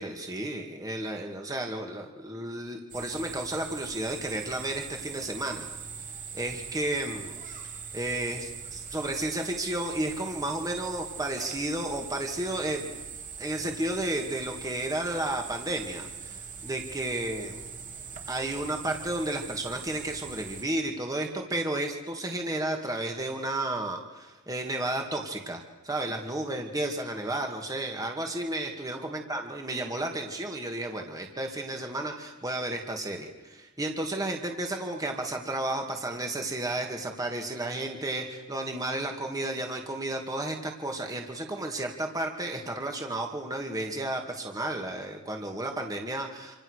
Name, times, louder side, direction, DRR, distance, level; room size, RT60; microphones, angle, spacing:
voice 1, 0.0-5.6 6.3-7.4 7.9-13.0 13.4-17.7 18.3-46.6, right 1 dB, 15° right, 2 dB, 2.4 m, -32 dB
sound 1, 2.9-20.6, right 6 dB, 35° right, 3.1 m, -42 dB
27.5 x 27.5 x 6.6 m, 1.2 s
head